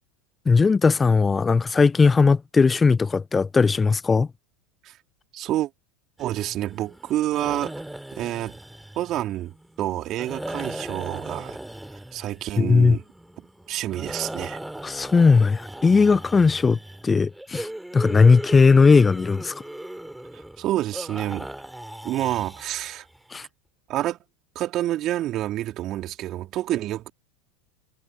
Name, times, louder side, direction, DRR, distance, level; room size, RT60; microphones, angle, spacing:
voice 1, 0.5-4.3 12.6-13.0 14.8-16.8 17.0-17.7 17.9-19.5 23.3-23.5, left 4 dB, 20° left, 0.6 m, -18 dB
voice 2, 5.3-5.7 6.2-7.8 8.1-8.5 8.9-11.6 12.1-13.0 13.7-14.6 20.6-21.5 22.0-23.0 23.9-24.2 24.5-27.1, right 14 dB, 45° right, 3.2 m, -28 dB
sound 1, 6.2-23.2, right 1 dB, 5° right, 4.4 m, -38 dB
hypercardioid pair, 85°, 0 cm